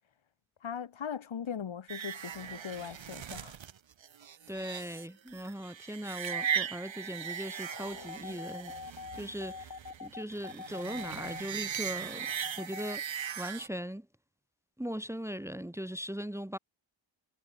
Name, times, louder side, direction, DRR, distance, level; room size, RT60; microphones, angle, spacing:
voice 1, 0.6-3.6, left 8 dB, 65° left, 2.2 m, -39 dB
sound 1, 1.9-13.7, right 8 dB, 65° right, 1.6 m, -39 dB
voice 2, 4.5-9.7 10.0-12.3 12.6-14.1 14.8-16.6, equal, 5° right, 1.3 m, -39 dB
sound 2, 6.2-13.0, left 5 dB, 40° left, 2.3 m, -46 dB
cardioid pair, 60°, 50 cm